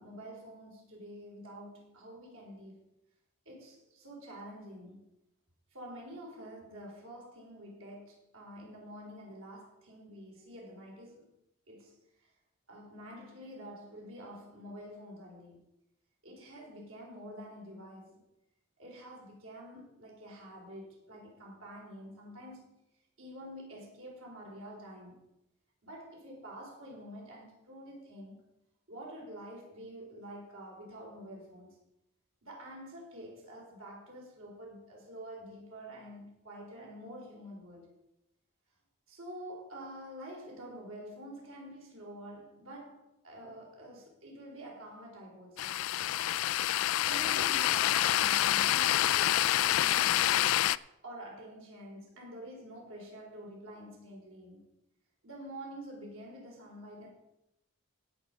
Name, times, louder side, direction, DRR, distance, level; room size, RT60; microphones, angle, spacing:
voice 1, 0.0-2.8 3.5-5.0 5.7-11.3 11.7-11.9 12.7-15.6 16.2-18.2 18.8-22.8 23.2-25.2 25.8-28.4 28.9-31.8 32.4-37.9 39.1-43.0 43.2-45.8 46.7-54.6 55.2-57.1, equal, 70° right, -2 dB, 4.5 m, -48 dB
sound 1, 45.6-50.8, left 13 dB, 70° left, 0.3 m, -27 dB
16.5 x 7.4 x 5.1 m, 0.87 s
head